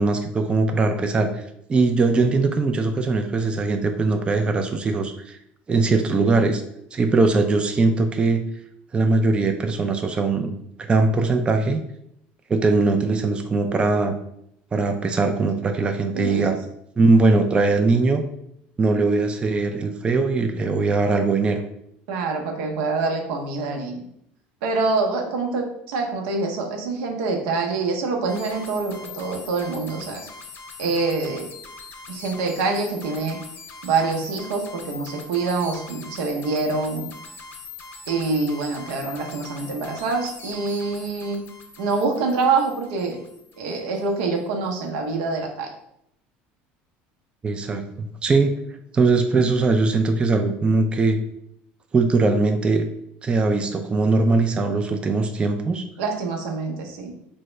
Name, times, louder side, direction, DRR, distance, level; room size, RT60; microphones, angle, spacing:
voice 1, 0.0-1.4 1.7-5.4 5.7-6.6 6.9-8.4 8.9-10.6 10.9-11.8 12.5-14.1 14.7-16.6 17.0-18.2 18.8-21.6 47.4-48.5 48.9-51.2 51.9-52.9 53.2-55.8, right 3 dB, 20° right, 5 dB, 0.3 m, -20 dB
voice 2, 16.1-16.5 22.1-24.0 24.6-30.3 30.8-31.5 32.1-33.4 33.8-37.1 38.1-41.4 41.8-43.2 43.6-45.7 56.0-57.1, right 3 dB, 80° right, 2 dB, 0.7 m, -25 dB
sound 1, 28.3-44.1, left 4 dB, 50° left, 0.5 m, -42 dB
3.5 x 2.1 x 3.1 m, 0.76 s
supercardioid pair, 100°, 5 cm